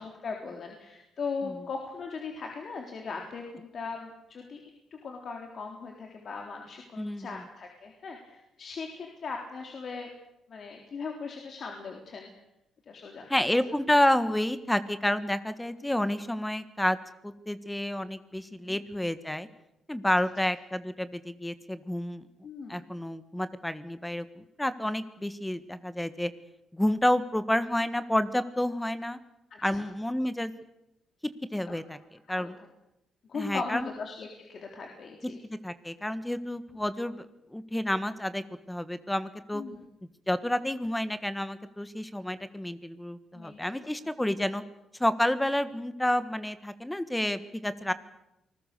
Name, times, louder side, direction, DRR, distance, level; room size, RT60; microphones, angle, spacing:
voice 1, 0.0-4.6 4.9-10.1 10.5-12.3 12.9-13.3 15.8-16.0 18.6-18.8 22.4-22.9 29.5-29.8 31.7-31.8 32.3-32.7 33.3-35.4 39.5-39.8 43.3-43.8 47.8-47.9, left 4 dB, 55° left, 1 dB, 3.7 m, -39 dB
voice 2, 7.0-7.4 13.3-17.0 17.2-19.5 19.9-22.3 22.7-26.3 26.7-29.2 29.6-30.5 31.5-32.0 32.3-32.6 33.3-33.9 35.4-39.6 40.3-44.6 45.0-47.9, left 1 dB, 5° left, 12 dB, 1.6 m, -29 dB
28.5 x 20.0 x 6.8 m, 0.88 s
cardioid pair, 100°, 0 cm